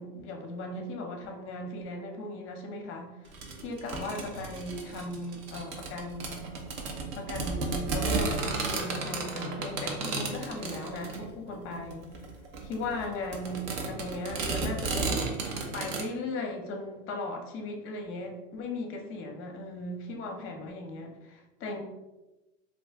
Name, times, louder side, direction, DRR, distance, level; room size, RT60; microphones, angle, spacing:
voice 1, 0.0-3.3 3.6-6.4 7.2-12.1 12.7-15.1 15.7-21.8, left 2 dB, 35° left, 4 dB, 0.6 m, -37 dB
sound 1, 3.3-16.0, right 3 dB, 55° right, 0.7 m, -33 dB
2.5 x 2.4 x 3.5 m, 1.0 s
hypercardioid pair, 110°, 39 cm